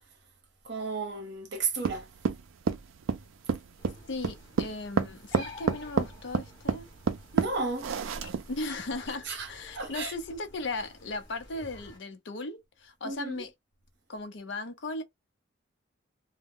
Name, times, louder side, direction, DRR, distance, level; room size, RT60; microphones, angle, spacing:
voice 1, 0.6-2.1 7.3-8.0 9.3-9.5 9.7-10.1 13.0-13.4, right 4 dB, 55° right, 0.8 m, -33 dB
sound 1, 1.8-8.6, right 6 dB, 80° right, 0.4 m, -29 dB
sound 2, 3.8-12.0, left 1 dB, 20° left, 0.9 m, -49 dB
voice 2, 4.1-6.9 8.5-13.5 14.1-15.0, left 2 dB, 60° left, 0.6 m, -37 dB
2.1 x 2.1 x 3.5 m
head